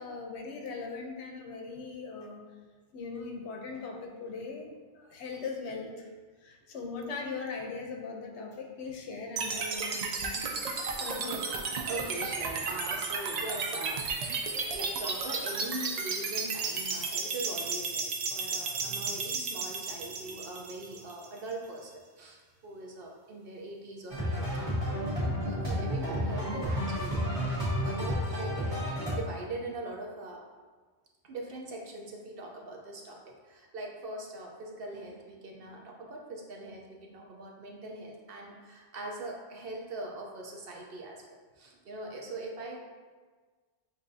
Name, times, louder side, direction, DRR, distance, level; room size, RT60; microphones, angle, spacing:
voice 1, 0.0-2.4 2.9-6.1 6.4-10.4 11.0-11.4, left 4 dB, 70° left, 1 dB, 0.9 m, -40 dB
sound 1, 9.4-21.4, right 4 dB, 85° right, 0.3 m, -33 dB
voice 2, 10.8-11.1 11.9-14.0 14.4-30.4 31.2-41.2 41.6-42.8, right 2 dB, 55° right, 0 dB, 0.8 m, -42 dB
sound 2, 24.1-29.1, equal, 25° right, 1.7 m, -31 dB
7.3 x 2.6 x 2.6 m, 1.4 s
omnidirectional pair, 1.3 m